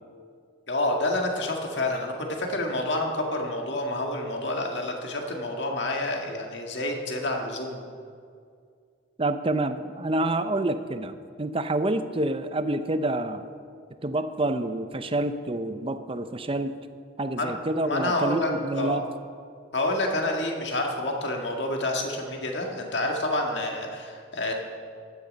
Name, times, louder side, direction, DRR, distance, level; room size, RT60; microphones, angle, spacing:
voice 1, 0.7-7.8 17.4-17.5 17.9-19.0 19.7-24.5, left 1 dB, 65° left, 1 dB, 1.8 m, -28 dB
voice 2, 9.2-13.4 14.0-16.8 17.2-19.0, right 2 dB, 30° right, 10 dB, 0.6 m, -28 dB
15.5 x 11.0 x 5.3 m, 2.2 s
head